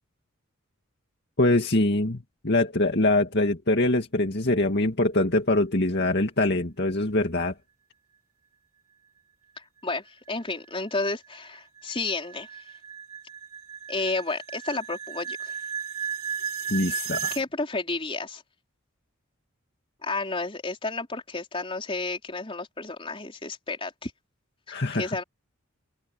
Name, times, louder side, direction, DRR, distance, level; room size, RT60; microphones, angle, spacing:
voice 1, 1.4-7.5 16.7-17.3 24.7-25.2, left 2 dB, 50° left, 2.2 m, -24 dB
voice 2, 9.8-12.5 13.9-15.5 16.9-17.0 17.3-18.4 20.0-24.1 24.7-25.2, left 3 dB, 25° left, 4.4 m, -31 dB
sound 1, 10.3-17.4, right 7 dB, 85° right, 4.8 m, -35 dB
head